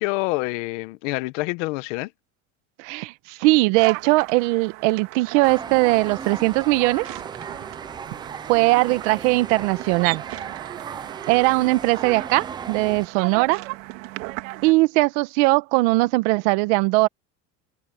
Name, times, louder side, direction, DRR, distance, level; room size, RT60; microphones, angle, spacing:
voice 1, 0.0-2.1, left 23 dB, 70° left, 1.0 m, -27 dB
voice 2, 2.8-7.0 8.5-10.2 11.3-13.6 14.6-17.1, right 22 dB, 65° right, 1.1 m, -20 dB
sound 1, 3.8-14.7, right 22 dB, 80° right, 2.1 m, -37 dB
sound 2, 5.4-13.1, right 6 dB, 10° right, 0.4 m, -36 dB
cardioid pair, 165°, 38 cm